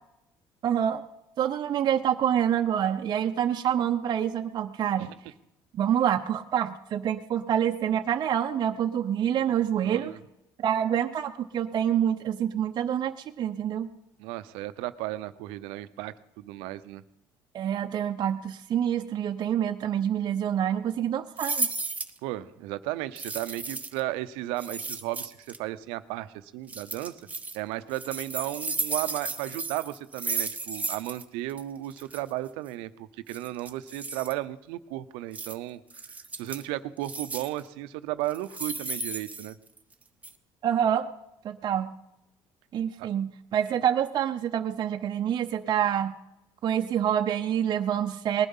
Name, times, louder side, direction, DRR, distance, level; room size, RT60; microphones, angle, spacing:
voice 1, 0.6-1.0 1.4-5.1 5.7-10.1 10.6-13.9 17.5-21.7 40.6-41.1 41.4-41.9 42.7-46.1 46.6-48.5, right 9 dB, 50° right, 4 dB, 0.8 m, -27 dB
voice 2, 9.8-10.2 14.2-17.0 22.2-27.2 27.5-35.8 36.4-39.6 43.0-43.1, right 16 dB, 85° right, 13 dB, 0.8 m, -34 dB
sound 1, 21.4-22.2 23.2-24.0 24.6-25.6 26.7-27.6 27.9-31.2 31.5-31.6 31.9-32.2 33.3-34.3 35.3-35.5 35.9-36.6 37.0-37.6 38.3-39.9 40.2-40.3, right 3 dB, 15° right, 1.2 m, -34 dB
19.5 x 11.5 x 5.6 m, 0.89 s
supercardioid pair, 90°, 9 cm